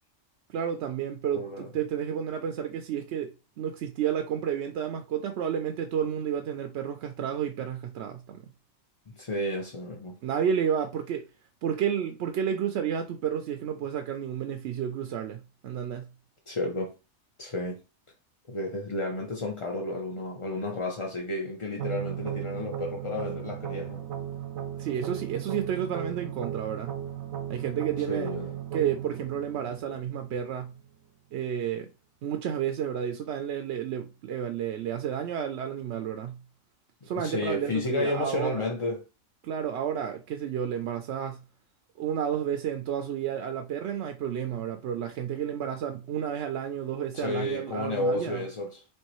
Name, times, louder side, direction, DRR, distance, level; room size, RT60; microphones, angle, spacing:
voice 1, 0.5-3.3 3.6-8.4 10.2-11.2 11.6-16.1 24.8-27.0 27.5-28.3 28.7-30.8 31.3-31.9 32.2-36.4 37.0-38.7 39.4-41.4 42.0-48.4, right 8 dB, 65° right, 0.7 m, -31 dB
voice 2, 1.3-1.7 9.1-10.2 16.5-16.9 17.4-17.8 18.5-24.1 28.1-28.6 37.0-39.0 47.1-48.8, left 2 dB, 35° left, 0.5 m, -32 dB
sound 1, 21.8-30.8, right 10 dB, 85° right, 1.2 m, -36 dB
4.5 x 3.0 x 3.0 m
omnidirectional pair, 1.4 m